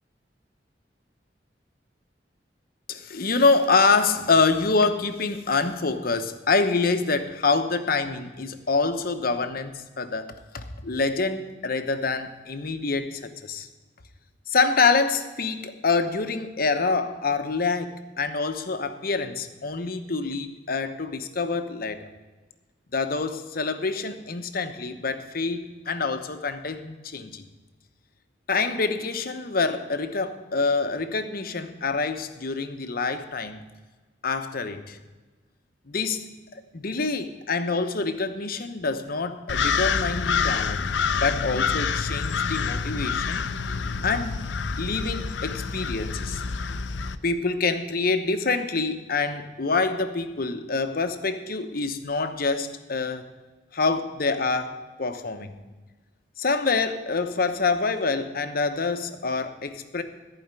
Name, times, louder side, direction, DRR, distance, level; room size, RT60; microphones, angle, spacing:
voice 1, 2.9-13.7 14.5-22.1 22.9-27.4 28.5-33.6 34.2-35.0 35.9-40.9 41.2-43.4 44.0-44.5 44.8-46.4 47.2-53.3 53.7-55.6 56.4-60.0, left 4 dB, 55° left, 8 dB, 0.9 m, -26 dB
sound 1, 39.5-47.2, left 6 dB, 90° left, 0.6 m, -27 dB
14.5 x 5.0 x 9.0 m, 1.2 s
head